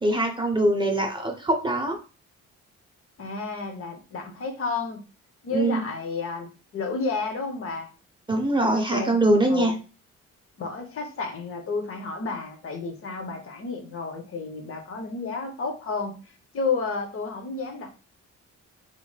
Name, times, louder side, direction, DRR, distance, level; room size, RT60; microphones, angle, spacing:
voice 1, 0.0-2.0 5.5-5.8 8.3-9.7, right 1 dB, 15° right, 3 dB, 0.6 m, -23 dB
voice 2, 3.2-5.0 5.4-7.9 8.7-9.2 9.5-9.7 10.6-16.2 16.5-17.9, left 4 dB, 45° left, 4 dB, 0.8 m, -31 dB
3.1 x 3.0 x 2.3 m, 0.34 s
cardioid pair, 90°, 30 cm